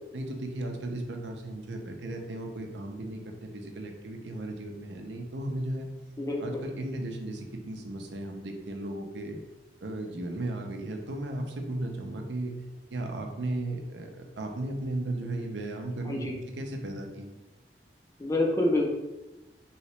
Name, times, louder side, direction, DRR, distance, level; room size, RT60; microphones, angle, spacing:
voice 1, 0.1-5.9 6.4-9.4 9.8-12.5 12.9-17.3, right 1 dB, 85° right, 3 dB, 0.5 m, -35 dB
voice 2, 6.2-6.6 16.1-16.3 18.2-18.9, left 1 dB, 20° left, 0 dB, 0.5 m, -27 dB
3.1 x 2.9 x 3.1 m, 1.0 s
head